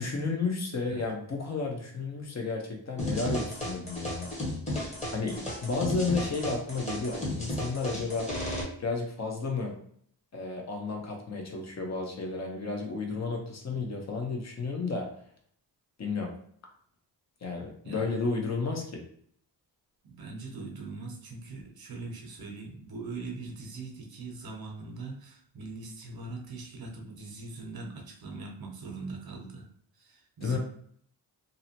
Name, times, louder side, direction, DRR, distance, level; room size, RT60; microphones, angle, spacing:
voice 1, 0.0-4.3 5.1-8.5 8.8-9.7 10.3-15.1 16.0-16.3 17.4-19.0 30.4-30.6, left 4 dB, 35° left, 1 dB, 0.9 m, -32 dB
sound 1, 3.0-8.6, left 1 dB, 15° left, 1.1 m, -34 dB
voice 2, 20.0-29.7 30.0-30.6, right 3 dB, 50° right, 2 dB, 0.8 m, -41 dB
2.7 x 2.1 x 2.8 m, 0.62 s
cardioid pair, 55°, 46 cm